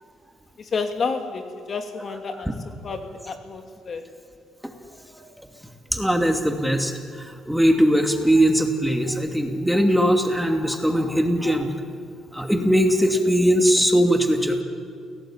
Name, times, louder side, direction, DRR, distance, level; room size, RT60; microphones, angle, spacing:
voice 1, 0.6-2.5 2.8-4.1, left 4 dB, 50° left, 6 dB, 2.6 m, -30 dB
voice 2, 5.9-6.9 7.2-11.7 12.3-14.6, equal, ahead, 4 dB, 2.6 m, -20 dB
28.0 x 17.5 x 8.9 m, 2.2 s
cardioid pair, 90°, 0 cm